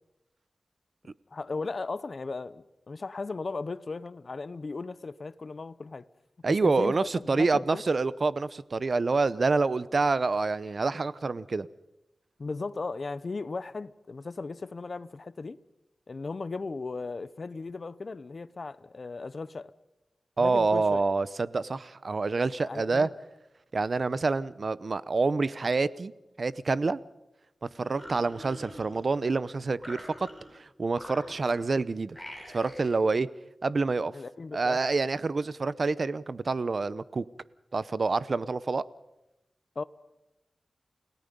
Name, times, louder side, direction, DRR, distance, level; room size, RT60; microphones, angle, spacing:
voice 1, 1.3-6.0 6.5-7.8 12.4-15.6 16.1-19.7 20.4-21.0 22.6-23.1 34.1-34.8 39.7-39.8, left 3 dB, 55° left, 0.9 m, -36 dB
voice 2, 6.4-11.7 20.4-23.1 23.7-26.1 26.4-27.0 27.8-30.3 30.5-32.2 32.5-33.3 33.6-34.1 34.5-37.2 37.7-38.9, right 3 dB, 55° right, 0.8 m, -27 dB
sound 1, 27.8-29.3 29.8-30.6 30.9-31.7 32.1-33.0, equal, ahead, 6.4 m, -45 dB
29.5 x 18.0 x 5.4 m
wide cardioid pair, 85°, 0 cm